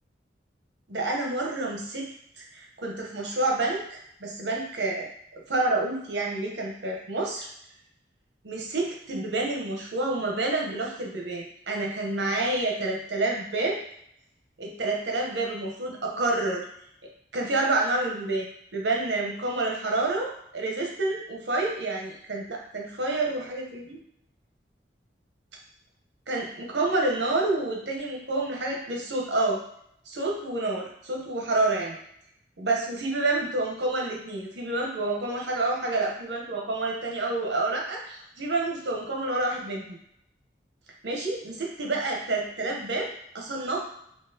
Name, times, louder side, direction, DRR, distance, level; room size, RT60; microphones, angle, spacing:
voice 1, 0.9-2.1 2.4-5.1 5.5-7.5 8.4-13.8 14.6-16.6 17.3-24.0 26.3-29.6 30.1-32.0 32.6-40.0 41.0-43.8, right 2 dB, 75° right, -1 dB, 0.9 m, -28 dB
3.9 x 2.8 x 2.8 m, 0.72 s
head